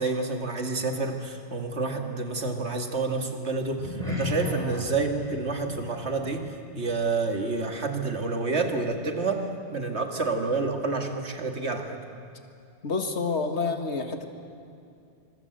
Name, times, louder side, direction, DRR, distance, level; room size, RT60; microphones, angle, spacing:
voice 1, 0.0-12.0, right 3 dB, 80° right, 4 dB, 2.4 m, -29 dB
sound 1, 3.7-8.3 8.6-8.9 9.3-9.4, left 1 dB, 35° left, 6.5 m, -37 dB
voice 2, 12.8-14.3, left 4 dB, 85° left, 6 dB, 2.1 m, -29 dB
26.0 x 22.0 x 8.0 m, 2.5 s
omnidirectional pair, 1.1 m